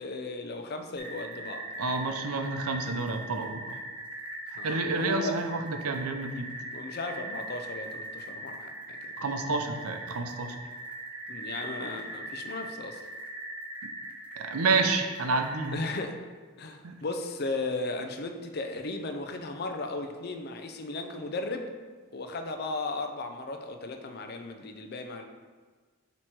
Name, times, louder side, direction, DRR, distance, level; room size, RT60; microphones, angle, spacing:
voice 1, 0.0-1.7 4.6-5.4 6.7-9.0 11.3-13.0 15.7-16.2 16.6-21.7 22.1-25.2, left 2 dB, 45° left, 5 dB, 0.5 m, -36 dB
sound 1, 1.0-15.7, right 1 dB, 5° right, 0.6 m, -40 dB
voice 2, 1.8-3.8 4.6-6.5 9.2-10.6 14.4-15.8 16.8-17.0, right 3 dB, 85° right, 6 dB, 0.6 m, -29 dB
7.5 x 3.1 x 4.5 m, 1.5 s
head